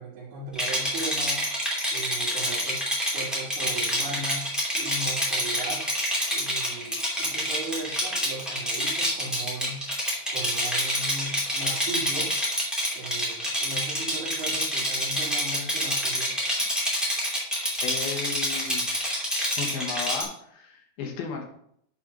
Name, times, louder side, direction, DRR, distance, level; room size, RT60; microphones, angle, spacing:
voice 1, 0.0-1.4 1.9-5.8 6.3-9.8 10.3-12.3 12.9-16.4, right 2 dB, 75° right, -6 dB, 3.8 m, -37 dB
Rattle, 0.5-20.2, equal, ahead, 1.4 m, -27 dB
voice 2, 17.8-18.9 19.6-21.5, left 5 dB, 70° left, 1 dB, 3.1 m, -34 dB
10.5 x 4.5 x 5.3 m, 0.69 s
omnidirectional pair, 4.5 m